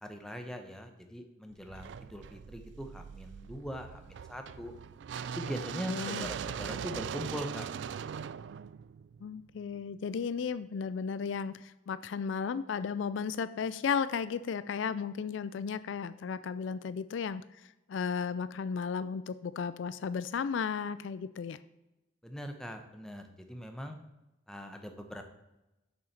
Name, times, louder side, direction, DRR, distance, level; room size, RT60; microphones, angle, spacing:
voice 1, 0.0-4.7 5.4-7.7 8.0-8.2 22.2-24.0 24.5-25.2, equal, 5° left, 5 dB, 0.8 m, -41 dB
sound 1, 1.7-9.7, right 7 dB, 60° right, 0.3 m, -41 dB
voice 2, 5.9-6.3 9.2-17.4 17.9-21.6, left 6 dB, 70° left, 15 dB, 0.4 m, -34 dB
7.0 x 6.3 x 5.8 m, 0.97 s
head